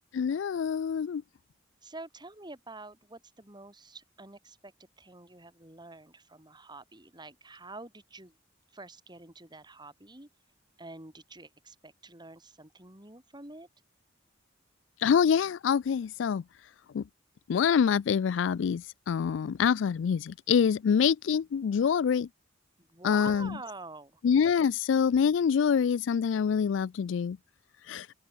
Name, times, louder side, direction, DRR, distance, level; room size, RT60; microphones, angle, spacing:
voice 1, 0.1-1.2 15.0-16.4 16.9-17.0 17.5-22.3 23.0-23.6 24.2-27.4 27.9-28.1, left 7 dB, 70° left, 0.3 m, -26 dB
voice 2, 1.8-4.7 5.0-8.4 8.7-10.3 10.8-13.7 22.8-24.2, right 2 dB, 25° right, 6.1 m, -47 dB
open air
head